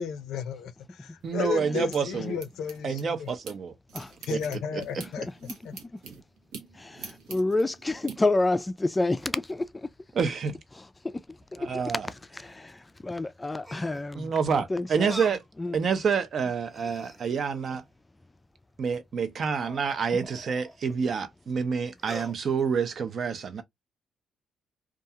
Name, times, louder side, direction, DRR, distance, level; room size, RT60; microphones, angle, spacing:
voice 1, 0.0-3.3 4.3-5.3 5.6-5.7, left 7 dB, 85° left, 0.5 m, -34 dB
voice 2, 1.2-2.4 2.8-3.7 4.3-4.8 10.1-10.6 11.6-12.1 14.1-15.4 15.7-17.8 18.8-23.6, right 6 dB, 55° right, 0.6 m, -28 dB
sound 1, 1.2-3.6 3.9-8.2, right 5 dB, 90° right, 0.8 m, -45 dB
voice 3, 6.7-9.9 11.0-11.2 11.5-11.8 12.3-15.1 15.6-15.8, left 2 dB, 15° left, 0.3 m, -29 dB
sound 2, 11.3-12.6 13.6-14.2 15.1-15.5 16.1-16.2 16.6-18.0 19.4-21.0 22.0-22.4, equal, 5° right, 1.0 m, -45 dB
2.4 x 2.3 x 2.8 m
cardioid pair, 90°, 0 cm